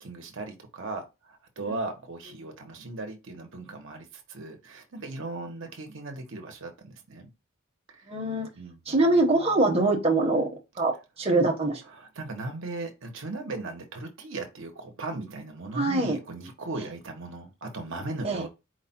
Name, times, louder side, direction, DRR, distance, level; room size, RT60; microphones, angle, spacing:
voice 1, 0.0-7.3 7.9-8.1 8.6-8.8 11.9-18.5, right 2 dB, 65° right, 1.0 m, -37 dB
voice 2, 8.1-8.5 8.9-10.5 10.8-11.8 15.7-16.2 18.2-18.4, right 2 dB, 30° right, 0.9 m, -23 dB
4.6 x 2.2 x 4.3 m
head